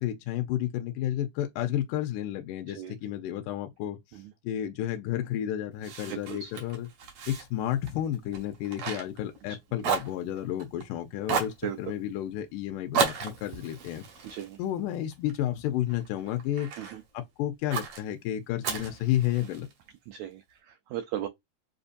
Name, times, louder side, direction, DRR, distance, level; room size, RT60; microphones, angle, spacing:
voice 1, 0.0-6.9 7.3-14.1 14.6-16.7 17.1-19.7, left 12 dB, 80° left, 2.1 m, -31 dB
Fire, 5.8-9.5 9.8-10.8 11.2-11.6 12.9-15.4 15.9-17.0 17.7-18.0 18.6-19.7, right 6 dB, 60° right, 1.7 m, -33 dB
voice 2, 6.1-6.5 11.6-11.8 14.2-14.6 16.8-17.0 20.1-21.3, right 11 dB, 80° right, 1.7 m, -37 dB
7.0 x 2.7 x 2.5 m
omnidirectional pair, 3.8 m